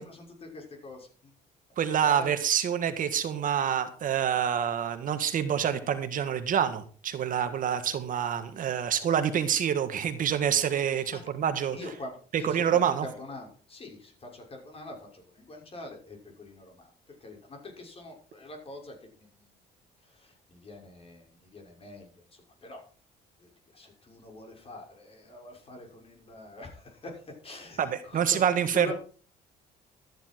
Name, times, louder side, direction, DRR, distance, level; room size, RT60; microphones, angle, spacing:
voice 1, 0.0-1.3 2.0-2.3 8.5-8.9 11.0-11.2 11.7-19.5 20.0-22.8 23.4-28.4 28.7-28.9, left 2 dB, 35° left, 2 dB, 6.2 m, -44 dB
voice 2, 1.8-11.8 12.3-13.1 27.8-28.9, right 8 dB, 55° right, 9 dB, 1.7 m, -27 dB
13.5 x 10.5 x 4.7 m, 0.40 s
cardioid pair, 110°, 17 cm